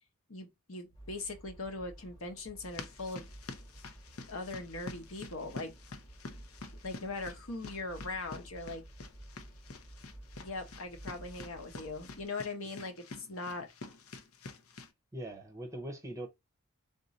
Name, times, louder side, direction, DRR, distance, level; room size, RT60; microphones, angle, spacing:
voice 1, 0.3-3.3 4.3-5.7 6.8-8.8 10.4-13.7, left 3 dB, 70° left, 1.1 m, -40 dB
sound 1, 0.9-12.2, right 1 dB, 15° left, 1.1 m, -53 dB
sound 2, 2.6-14.9, left 3 dB, 90° left, 0.7 m, -48 dB
voice 2, 15.1-16.3, right 1 dB, 15° right, 0.7 m, -41 dB
3.7 x 2.6 x 4.0 m
head